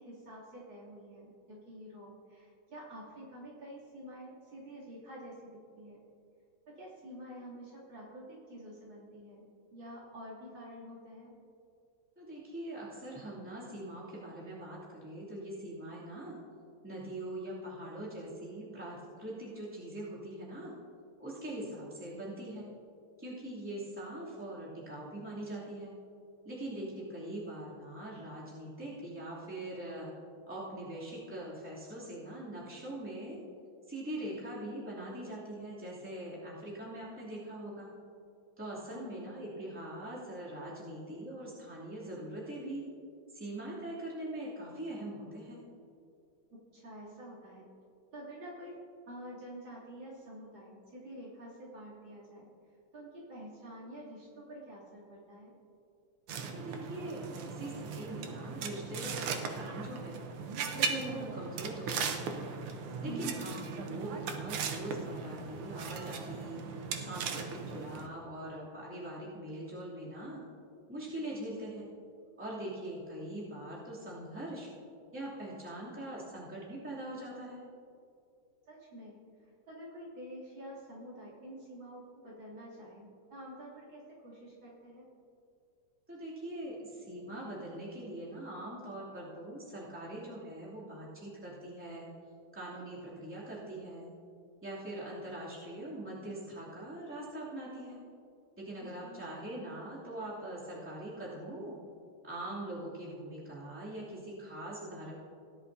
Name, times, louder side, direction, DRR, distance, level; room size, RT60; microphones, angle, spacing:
voice 1, 0.0-6.0 6.7-9.4 9.7-11.3 38.9-39.2 46.5-47.6 48.1-48.7 49.1-52.5 52.9-55.5 63.0-63.6 78.7-79.2 79.7-85.0 98.8-99.3, equal, 65° right, -6 dB, 3.6 m, -48 dB
voice 2, 12.2-16.4 16.8-20.7 21.2-22.7 23.2-25.9 26.4-30.1 30.5-33.4 33.9-37.9 38.6-42.8 43.3-45.6 56.5-60.2 60.7-62.4 63.0-66.6 67.0-70.4 70.9-71.9 72.4-74.7 75.1-77.6 86.1-92.1 92.5-94.1 94.6-98.0 98.6-101.8 102.2-105.1, right 1 dB, 5° right, -8 dB, 2.6 m, -42 dB
sound 1, 56.3-68.1, right 5 dB, 90° right, 1.8 m, -38 dB
18.0 x 10.5 x 2.7 m, 2.5 s
omnidirectional pair, 2.3 m